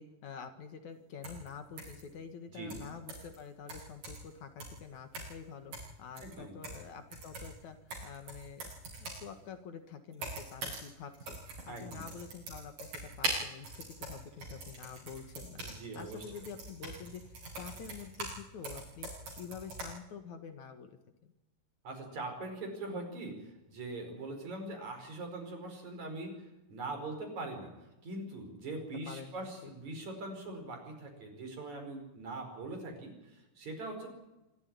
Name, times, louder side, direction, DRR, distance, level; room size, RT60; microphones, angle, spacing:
voice 1, 0.0-11.4 11.7-15.6 15.9-19.1 19.3-21.3 29.1-29.7, left 6 dB, 65° left, 7 dB, 3.0 m, -47 dB
sound 1, 1.2-1.5 1.8-2.0 2.7-3.4 3.7-4.3 4.6-4.8 5.1-5.4 5.7-6.9 7.1-9.3 10.1-10.9 11.1-18.4 18.6-19.9, right 2 dB, 80° right, 9.1 m, -42 dB
voice 2, 2.5-2.9 6.2-6.6 11.7-12.0 15.6-16.2 21.8-27.7 28.0-34.1, right 2 dB, 60° right, 4 dB, 6.1 m, -42 dB
25.5 x 13.5 x 9.6 m, 0.99 s
omnidirectional pair, 3.7 m